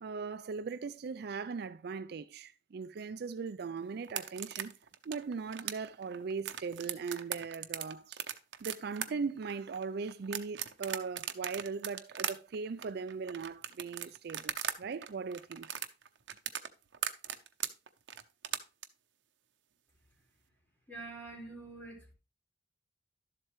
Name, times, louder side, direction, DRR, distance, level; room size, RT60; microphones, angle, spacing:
voice 1, 0.0-4.7 5.0-8.2 8.6-15.7, right 5 dB, 60° right, 0.4 m, -39 dB
sound 1, 4.0-14.8 15.0-18.9, right 10 dB, 80° right, 0.8 m, -38 dB
voice 2, 20.9-22.1, right 3 dB, 10° left, 4.4 m, -46 dB
12.0 x 7.6 x 3.1 m
head